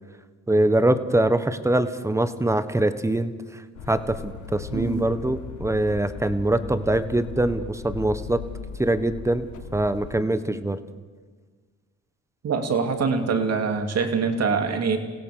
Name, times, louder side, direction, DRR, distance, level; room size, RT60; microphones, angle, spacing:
voice 1, 0.5-8.4 8.8-9.5 9.7-10.8, right 1 dB, 10° right, 11 dB, 1.4 m, -23 dB
sound 1, 3.7-10.2, left 6 dB, 80° left, 1.5 m, -38 dB
voice 2, 4.7-5.1 12.4-15.0, right 5 dB, 55° right, 5 dB, 2.8 m, -24 dB
27.5 x 16.5 x 6.8 m, 1.4 s
cardioid pair, 90°, 30 cm